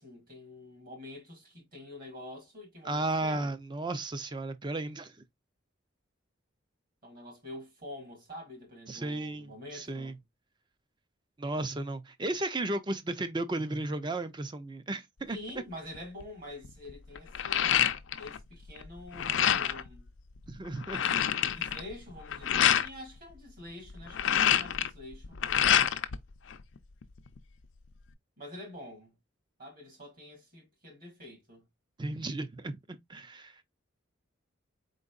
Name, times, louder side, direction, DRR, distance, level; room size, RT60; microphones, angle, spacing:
voice 1, 0.0-3.5 7.0-10.2 15.3-17.7 18.2-20.1 21.5-25.4 28.4-29.2 29.6-31.7, left 1 dB, 45° right, 2.0 m, -46 dB
voice 2, 2.8-5.2 8.9-10.1 11.4-15.4 20.5-21.0 32.0-33.6, right 2 dB, 25° right, 0.5 m, -34 dB
sound 1, 15.9-16.2 16.6-18.4 18.7-19.9 20.4-20.5 20.7-22.9 23.9-26.2 26.5-27.4, left 9 dB, 70° left, 0.5 m, -27 dB
4.5 x 3.9 x 2.4 m
head